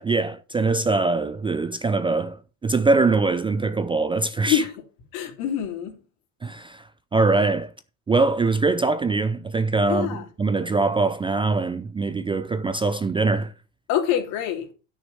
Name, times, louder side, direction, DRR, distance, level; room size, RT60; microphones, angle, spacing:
voice 1, 0.0-4.6 6.4-7.7 8.1-13.5, right 3 dB, 15° right, 0.4 m, -23 dB
voice 2, 5.1-5.9 9.9-10.2 13.9-14.7, left 10 dB, 65° left, 3.3 m, -25 dB
9.7 x 6.4 x 5.3 m
supercardioid pair, 105°, 41 cm